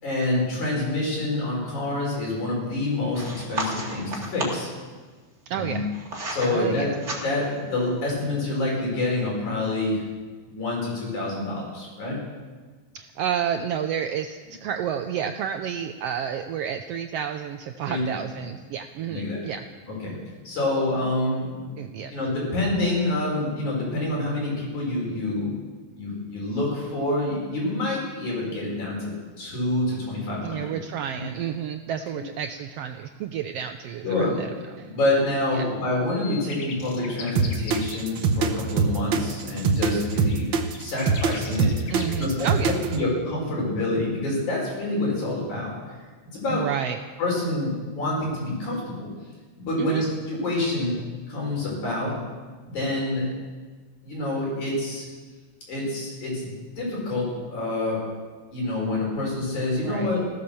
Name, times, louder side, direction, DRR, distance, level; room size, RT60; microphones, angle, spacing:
voice 1, 0.0-4.7 5.5-5.8 6.3-6.9 7.2-10.0 10.5-12.2 17.8-18.2 19.1-19.4 20.0-20.1 20.4-21.7 22.1-25.6 25.9-29.1 29.4-30.7 32.1-32.2 34.0-34.3 34.8-40.5 40.8-45.7 46.0-46.1 46.3-46.6 47.2-49.1 49.6-51.0 51.3-52.1 52.7-53.3 54.0-55.1 55.7-58.0 58.5-60.2, left 2 dB, 80° left, -3 dB, 6.5 m, -27 dB
sound 1, 3.1-4.7 5.5-6.5 6.9-7.6, right 2 dB, 25° right, 2.5 m, -33 dB
voice 2, 5.5-5.8 6.4-6.9 12.9-19.6 21.8-22.1 30.4-34.5 34.7-35.0 35.6-35.7 41.9-43.0 46.5-47.0 49.8-50.0 59.8-60.1, right 8 dB, 80° right, 7 dB, 1.4 m, -30 dB
sound 2, 36.1-38.0 39.9-40.0 40.3-42.3, left 5 dB, 65° left, 2.6 m, -40 dB
sound 3, 37.3-43.0, right 5 dB, 60° right, 1.3 m, -23 dB
16.0 x 13.0 x 6.9 m, 1.4 s
omnidirectional pair, 3.4 m